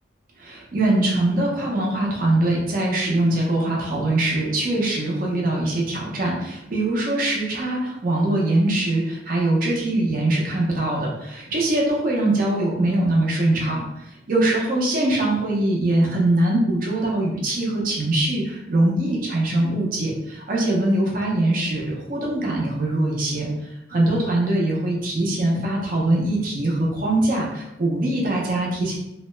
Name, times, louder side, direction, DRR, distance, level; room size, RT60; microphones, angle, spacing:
voice 1, 0.4-29.0, right 1 dB, 50° right, -3 dB, 0.5 m, -22 dB
2.7 x 2.1 x 3.1 m, 0.90 s
head